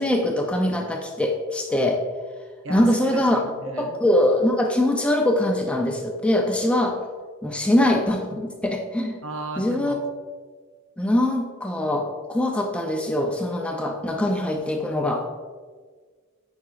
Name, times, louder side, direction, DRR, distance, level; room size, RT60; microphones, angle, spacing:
voice 1, 0.0-2.0 2.7-3.4 3.8-7.0 7.4-9.2 9.6-10.0 11.0-15.3, left 1 dB, 5° left, 2 dB, 0.4 m, -22 dB
voice 2, 2.6-4.0 9.2-10.0, right 2 dB, 60° right, 5 dB, 0.7 m, -35 dB
8.4 x 5.1 x 2.4 m, 1.5 s
head